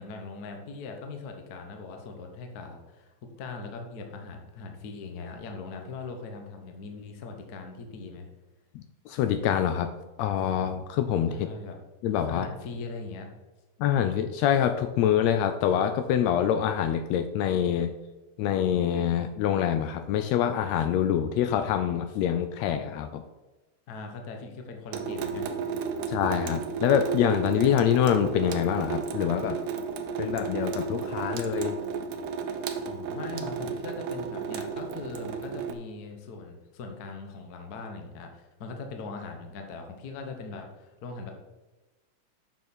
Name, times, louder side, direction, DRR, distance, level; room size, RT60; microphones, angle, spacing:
voice 1, 0.0-8.3 11.3-11.8 12.3-13.3 23.9-25.7 32.8-41.3, left 4 dB, 60° left, 3 dB, 1.0 m, -40 dB
voice 2, 8.8-9.9 10.2-11.5 12.0-12.5 13.8-17.9 18.4-23.2 26.1-29.6 30.2-31.8, left 9 dB, 80° left, 9 dB, 1.6 m, -25 dB
Water tap faucet / Sink (filling or washing) / Drip, 24.9-35.7, right 6 dB, 80° right, 1.3 m, -33 dB
8.4 x 6.4 x 4.3 m, 1.1 s
omnidirectional pair, 3.3 m